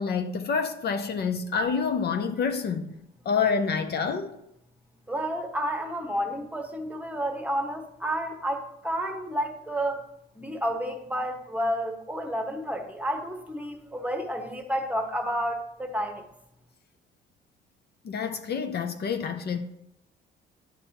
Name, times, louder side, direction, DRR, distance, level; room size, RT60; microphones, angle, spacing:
voice 1, 0.0-2.9 3.3-4.3 18.0-19.6, left 5 dB, 55° left, 0.6 m, -27 dB
voice 2, 5.1-10.0 10.3-16.2, equal, 5° right, 1.0 m, -30 dB
9.9 x 5.3 x 2.9 m
cardioid pair, 90°, 20 cm